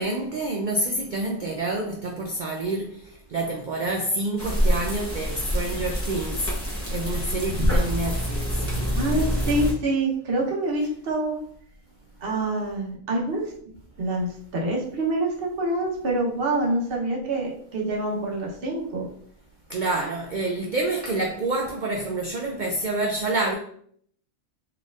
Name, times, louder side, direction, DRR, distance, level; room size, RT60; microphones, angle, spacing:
voice 1, 0.0-3.0 3.3-6.5 6.9-8.5 19.7-23.5, right 2 dB, 80° right, 0.4 m, -27 dB
sound 1, 4.4-9.7, equal, 10° left, 0.8 m, -26 dB
voice 2, 8.9-11.4 12.2-13.5 14.0-19.1, right 2 dB, 50° right, 1.0 m, -26 dB
4.1 x 3.3 x 2.4 m
omnidirectional pair, 1.4 m